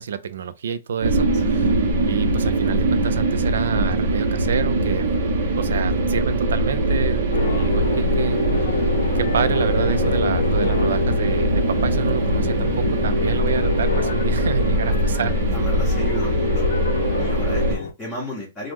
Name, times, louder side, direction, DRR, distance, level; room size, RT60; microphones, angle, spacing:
voice 1, 0.0-5.1 5.6-8.8 9.1-15.4, right 6 dB, 75° right, 0.4 m, -28 dB
sound 1, 1.0-17.8, right 1 dB, 60° right, 0.8 m, -22 dB
voice 2, 1.3-1.6 15.5-16.7 17.2-18.7, left 1 dB, 5° left, 0.8 m, -34 dB
sound 2, 7.3-17.9, left 4 dB, 75° left, 0.5 m, -26 dB
3.0 x 2.1 x 3.5 m
hypercardioid pair, 170°, 0 cm